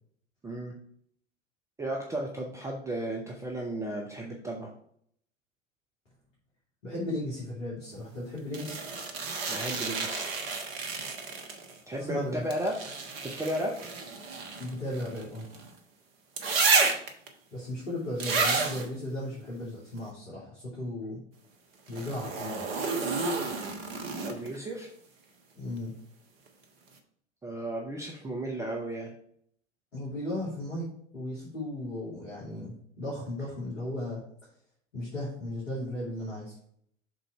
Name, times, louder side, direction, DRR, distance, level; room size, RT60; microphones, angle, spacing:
voice 1, 0.4-0.7 1.8-4.7 9.5-10.3 11.9-13.0 13.2-13.7 24.2-24.9 27.4-29.1, right 1 dB, 10° right, 0 dB, 0.6 m, -34 dB
voice 2, 6.8-8.8 12.0-12.4 14.6-15.5 17.5-21.2 21.9-22.6 25.5-25.9 29.9-30.9 31.1-34.2 34.9-36.5, left 1 dB, 75° left, -7 dB, 2.7 m, -36 dB
sound 1, 8.5-11.8 12.5-15.7 16.4-17.3 18.2-18.9 21.9-24.6 26.5-26.6, right 4 dB, 50° right, 1.2 m, -31 dB
6.3 x 3.9 x 4.7 m, 0.66 s
figure-of-eight pair, 90°, 37 cm